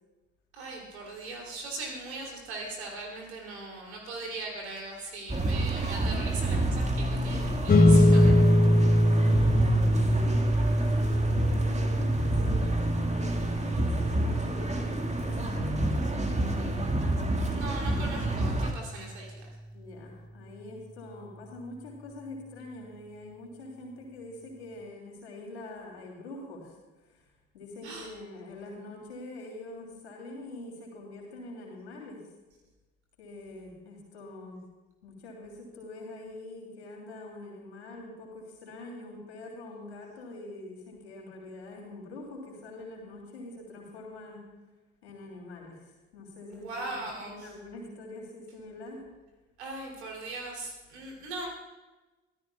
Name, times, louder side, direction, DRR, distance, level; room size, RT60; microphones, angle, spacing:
voice 1, 0.5-8.3 17.5-19.5 27.8-28.1 46.5-47.5 49.6-51.5, right 2 dB, 75° right, 0 dB, 3.1 m, -39 dB
sound 1, 5.3-18.7, right 1 dB, 20° right, 1.8 m, -29 dB
sound 2, 7.7-18.4, equal, 30° left, 2.3 m, -24 dB
voice 2, 9.1-16.8 19.7-27.3 27.5-32.2 33.2-34.6 35.0-44.4 45.0-49.0, left 2 dB, 80° left, 0 dB, 3.2 m, -44 dB
24.5 x 16.0 x 2.3 m, 1.2 s
figure-of-eight pair, 45°, 33 cm